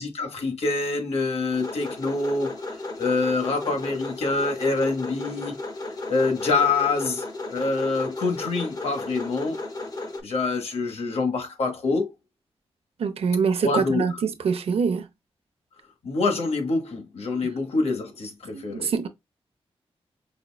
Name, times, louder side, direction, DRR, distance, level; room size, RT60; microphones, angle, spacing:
voice 1, 0.0-5.6 6.1-7.2 7.5-9.6 10.2-12.1 13.6-14.0 16.0-18.9, left 3 dB, 75° left, 1.1 m, -26 dB
sound 1, 1.5-10.2, left 2 dB, 40° left, 1.0 m, -34 dB
voice 2, 13.0-15.1 18.5-19.1, right 5 dB, 75° right, 0.6 m, -24 dB
5.1 x 2.2 x 2.3 m
wide cardioid pair, 95°, 10 cm